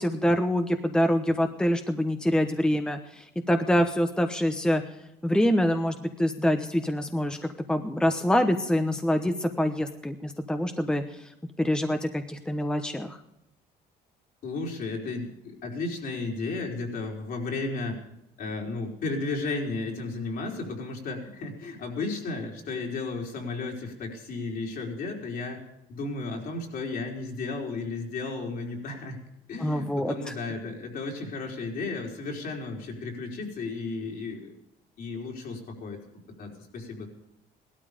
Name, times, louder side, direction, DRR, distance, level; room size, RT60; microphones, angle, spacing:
voice 1, 0.0-4.8 5.2-11.2 11.6-13.2 29.6-30.1, equal, 5° left, 7 dB, 1.1 m, -25 dB
voice 2, 14.4-18.0 18.4-25.6 25.9-29.2 29.5-34.5 35.0-36.0 36.4-37.1, left 3 dB, 60° left, 0 dB, 4.4 m, -34 dB
17.0 x 12.5 x 5.1 m, 0.84 s
cardioid pair, 110°, 17 cm